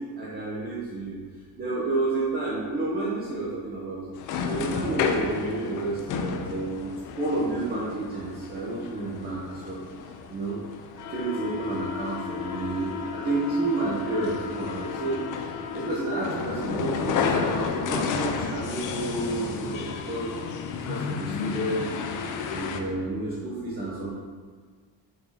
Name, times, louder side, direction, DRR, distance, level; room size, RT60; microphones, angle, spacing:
voice 1, 0.2-1.2 1.6-4.0 4.5-6.9 7.2-9.8 10.3-10.6 11.1-21.9 22.5-24.1, right 2 dB, 20° right, -7 dB, 0.8 m, -30 dB
sound 1, 4.2-22.8, left 6 dB, 50° left, 0.5 m, -32 dB
5.4 x 3.7 x 4.8 m, 1.5 s
cardioid pair, 175°, 43 cm